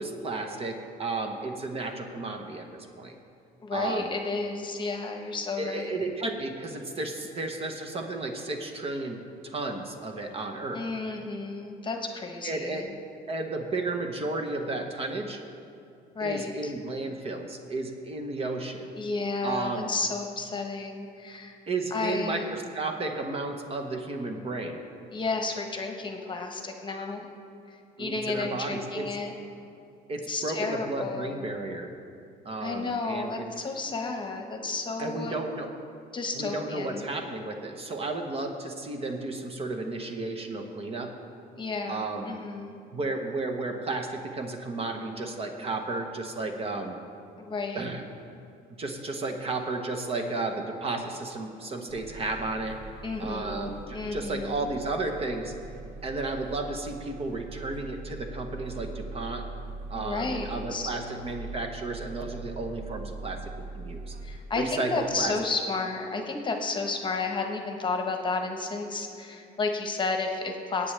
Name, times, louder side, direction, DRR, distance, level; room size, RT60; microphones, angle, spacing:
voice 1, 0.0-3.1 3.7-4.1 5.6-9.2 9.4-10.8 12.4-12.8 13.3-15.4 16.2-18.9 19.4-19.9 21.7-24.8 28.0-29.1 30.1-31.9 32.4-33.4 35.0-35.7 36.3-41.1 41.9-42.3 42.9-47.0 47.7-48.0 48.8-52.9 53.2-55.5 56.0-59.4 59.9-64.1 64.5-65.3, right 2 dB, 35° right, 4 dB, 1.1 m, -33 dB
voice 2, 3.6-6.0 10.7-12.9 16.1-16.7 18.9-21.6 21.9-22.6 25.1-27.3 27.7-29.3 30.3-31.5 32.6-35.4 36.1-37.1 41.6-42.8 47.4-47.8 53.0-54.7 59.9-60.9 64.2-70.9, left 3 dB, 30° left, 3 dB, 1.1 m, -32 dB
sound 1, 51.9-64.4, right 3 dB, 60° right, 0.8 m, -41 dB
17.5 x 8.6 x 3.3 m, 2.5 s
cardioid pair, 110°, 17 cm